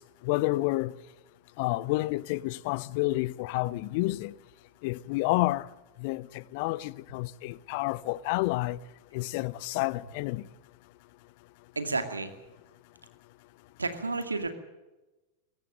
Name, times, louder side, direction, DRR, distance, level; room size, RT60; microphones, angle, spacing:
voice 1, 0.3-0.9 1.6-4.3 4.8-5.7 6.0-6.2 6.5-8.8 9.1-10.4, left 20 dB, 45° left, 0.7 m, -29 dB
voice 2, 11.8-12.3 13.8-14.5, right 3 dB, 80° right, 2.2 m, -31 dB
22.0 x 17.5 x 7.8 m
figure-of-eight pair, 90°, 0 cm